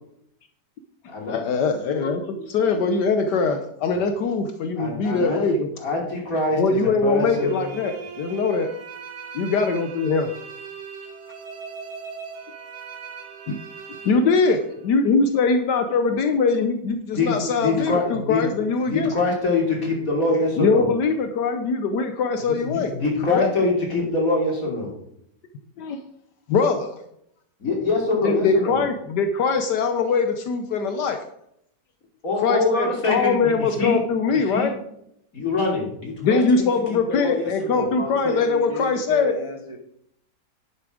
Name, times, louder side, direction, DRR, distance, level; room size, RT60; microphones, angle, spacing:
voice 1, 1.2-5.7 6.6-8.7 9.3-10.3 13.5-13.6 14.0-19.1 20.6-22.9 23.2-23.5 25.8-26.0 26.5-27.0 28.2-31.2 32.4-34.7 36.2-39.3, left 4 dB, 75° left, 7 dB, 1.4 m, -22 dB
voice 2, 4.8-5.4 5.8-7.6 17.1-17.3 17.6-18.5 18.8-20.9 22.5-24.9 27.6-28.8 32.2-34.0 34.3-34.7 35.3-37.9, left 3 dB, 50° left, -2 dB, 3.3 m, -24 dB
sound 1, 7.2-14.9, right 6 dB, 65° right, 1.8 m, -39 dB
voice 3, 37.7-39.8, left 1 dB, 25° right, 3 dB, 0.7 m, -31 dB
10.5 x 7.3 x 4.9 m, 0.73 s
omnidirectional pair, 1.9 m